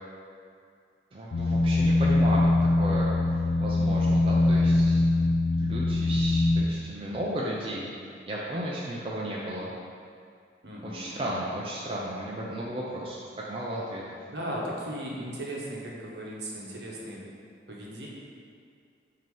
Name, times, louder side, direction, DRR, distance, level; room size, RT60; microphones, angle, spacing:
voice 1, 1.1-2.5 2.8-5.0 5.6-7.9 8.3-9.7 10.8-13.2 13.5-14.0, right 1 dB, 30° right, -5 dB, 0.5 m, -34 dB
sound 1, 1.3-6.6, left 2 dB, 80° left, 0.5 m, -23 dB
voice 2, 10.6-11.4 14.2-17.2 17.7-18.1, right 1 dB, 65° right, -4 dB, 1.0 m, -37 dB
6.0 x 2.9 x 5.4 m, 2.3 s
head